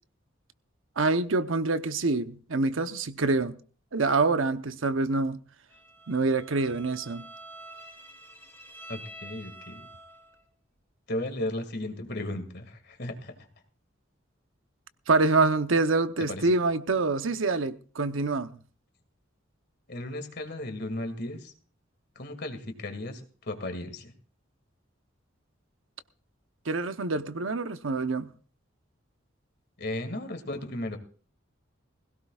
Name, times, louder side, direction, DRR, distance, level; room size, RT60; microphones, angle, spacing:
voice 1, 1.0-3.6 3.9-5.4 6.1-7.3 15.1-18.6 26.6-28.3, right 3 dB, 85° right, 0.9 m, -26 dB
Bowed string instrument, 5.7-10.4, right 1 dB, 10° left, 3.3 m, -47 dB
voice 2, 8.9-9.8 11.1-13.4 16.3-16.4 19.9-21.5 22.2-24.1 29.8-31.0, left 1 dB, 55° left, 2.3 m, -35 dB
20.5 x 17.0 x 2.4 m
head